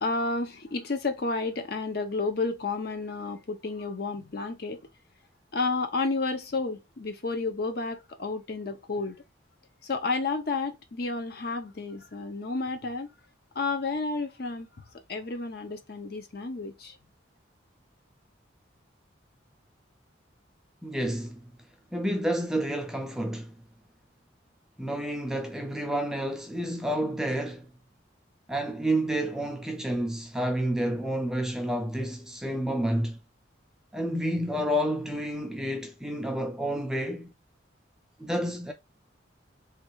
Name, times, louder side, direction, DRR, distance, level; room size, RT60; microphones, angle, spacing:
voice 1, 0.0-4.9 5.5-9.2 9.8-13.1 13.5-14.7 15.1-17.0, left 3 dB, 50° left, 0.6 m, -31 dB
voice 2, 20.8-21.5 21.9-23.5 24.8-27.7 28.5-33.2 33.9-37.3 38.2-38.7, right 1 dB, 5° right, 0.3 m, -29 dB
3.2 x 2.4 x 3.0 m
head